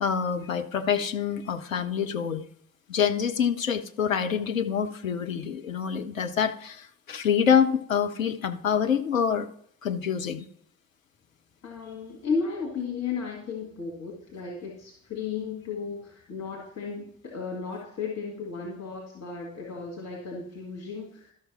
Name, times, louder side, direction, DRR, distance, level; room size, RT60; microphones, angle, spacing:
voice 1, 0.0-2.4 2.9-9.5 9.8-10.5, left 7 dB, 85° left, 7 dB, 0.5 m, -26 dB
voice 2, 11.6-21.3, left 5 dB, 40° left, -2 dB, 2.1 m, -34 dB
12.5 x 6.1 x 4.3 m, 0.66 s
figure-of-eight pair, 40°, 39 cm